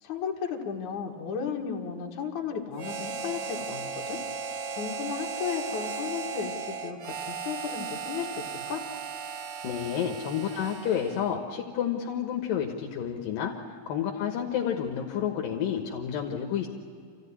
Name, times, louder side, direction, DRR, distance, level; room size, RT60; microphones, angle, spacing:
voice 1, 0.0-4.2 4.8-7.0 7.3-8.3 8.7-8.9, left 7 dB, 60° left, 0 dB, 3.1 m, -34 dB
Harmonica, 2.8-11.4, right 5 dB, 80° right, 1.2 m, -36 dB
voice 2, 9.6-13.5 13.9-16.7, left 8 dB, 75° left, 2 dB, 2.9 m, -30 dB
27.0 x 15.0 x 9.8 m, 2.2 s
omnidirectional pair, 4.1 m